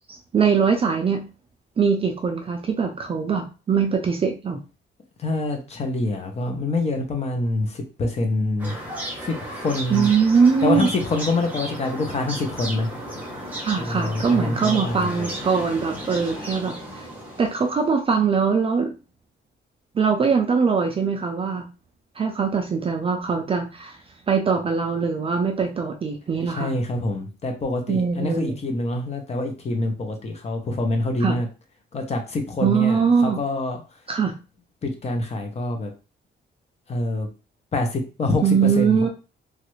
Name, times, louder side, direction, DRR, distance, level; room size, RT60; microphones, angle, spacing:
voice 1, 0.1-1.2 1.8-4.6 9.9-10.9 13.6-16.8 17.4-18.9 19.9-21.6 22.2-24.0 24.3-26.7 27.9-28.5 31.2-31.4 32.6-33.4 34.1-34.3 38.4-39.1, right 6 dB, 30° right, 3 dB, 0.4 m, -22 dB
voice 2, 5.2-8.8 9.2-10.1 10.6-12.9 13.8-15.3 26.5-31.5 31.9-33.8 34.8-35.9 36.9-37.3 37.7-39.0, left 2 dB, 35° left, 4 dB, 0.6 m, -26 dB
sound 1, 8.6-17.9, right 1 dB, 10° right, 0.8 m, -34 dB
3.1 x 2.4 x 3.0 m, 0.32 s
wide cardioid pair, 180°, 20 cm